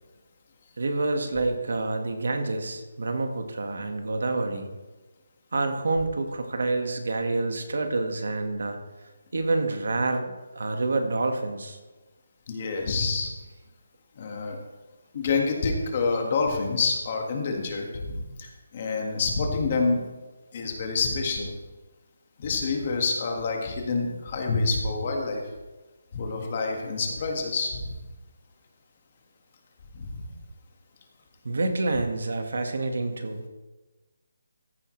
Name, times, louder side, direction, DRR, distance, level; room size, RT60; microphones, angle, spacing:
voice 1, 0.8-4.7 5.5-8.8 9.3-11.8 31.4-33.4, right 2 dB, 65° right, 5 dB, 1.6 m, -28 dB
voice 2, 12.5-13.3 14.2-14.6 15.1-20.0 20.5-21.5 22.4-25.4 26.1-27.9 29.9-30.3, left 4 dB, 30° left, 1 dB, 1.7 m, -27 dB
14.5 x 10.0 x 3.3 m, 1.2 s
hypercardioid pair, 175°, 0 cm